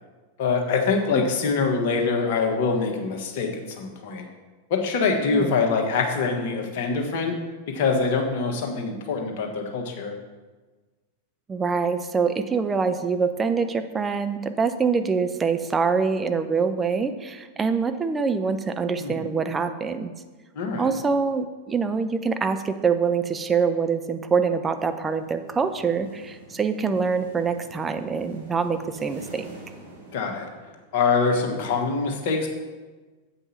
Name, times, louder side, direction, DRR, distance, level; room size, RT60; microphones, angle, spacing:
voice 1, 0.4-4.3 4.7-7.4 7.7-10.1 19.0-19.4 20.5-20.9 30.1-30.5 30.9-32.5, left 4 dB, 50° left, 2 dB, 1.4 m, -24 dB
voice 2, 11.5-20.1 20.8-29.5, right 5 dB, 15° right, 8 dB, 0.6 m, -25 dB
sound 1, 24.5-31.0, right 2 dB, 70° right, 2.4 m, -46 dB
8.0 x 5.4 x 5.8 m, 1.3 s
figure-of-eight pair, 90°, 0 cm